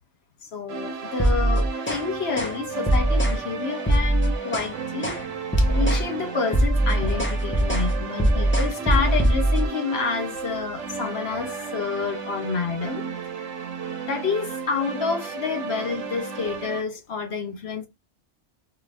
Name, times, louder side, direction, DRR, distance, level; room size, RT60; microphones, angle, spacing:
voice 1, 0.4-5.2 5.6-13.1 14.1-17.9, left 5 dB, 65° left, 1.1 m, -29 dB
sound 1, 0.7-16.8, right 5 dB, 90° right, 1.0 m, -34 dB
sound 2, 1.1-2.1 2.3-2.6 2.9-3.4 3.8-4.7 5.0-5.2 5.5-6.1 6.4-9.7, right 1 dB, 10° left, 0.7 m, -21 dB
2.6 x 2.5 x 3.3 m
omnidirectional pair, 1.2 m